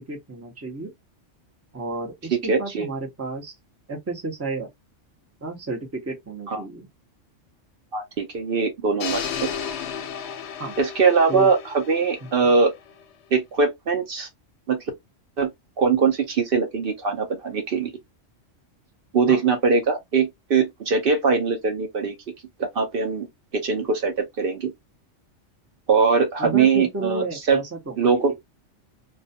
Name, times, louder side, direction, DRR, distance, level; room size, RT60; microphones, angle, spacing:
voice 1, 0.1-0.9 1.7-3.5 3.9-4.7 5.4-6.9 10.6-10.8 11.3-11.5 19.3-19.4 26.4-28.3, right 3 dB, 20° right, 0.5 m, -32 dB
voice 2, 2.3-2.9 6.5-6.6 7.9-9.5 10.8-12.7 13.3-14.3 14.7-14.8 15.4-15.5 15.8-17.9 19.1-22.1 22.6-23.3 23.5-24.7 25.9-27.6 28.0-28.3, right 5 dB, 55° right, 0.7 m, -21 dB
sound 1, 9.0-13.0, left 8 dB, 65° left, 0.8 m, -33 dB
2.3 x 2.2 x 2.6 m
omnidirectional pair, 1.3 m